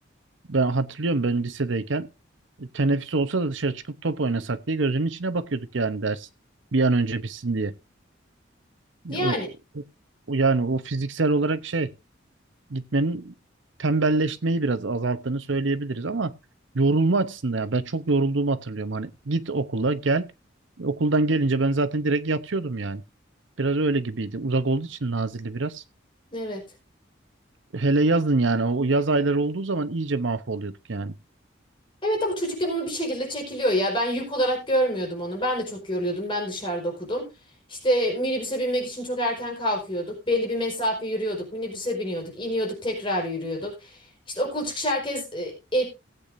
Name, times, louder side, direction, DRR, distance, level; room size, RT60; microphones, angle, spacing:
voice 1, 0.5-2.1 2.6-6.3 6.7-7.8 9.0-9.8 10.3-11.9 12.7-13.3 13.8-16.3 16.7-20.3 20.8-23.0 23.6-25.8 27.7-31.1, right 3 dB, 75° right, 0.8 m, -25 dB
voice 2, 9.1-9.5 26.3-26.6 32.0-37.3 37.7-44.0 44.3-45.8, equal, 25° left, 4.6 m, -27 dB
18.0 x 8.4 x 2.6 m
head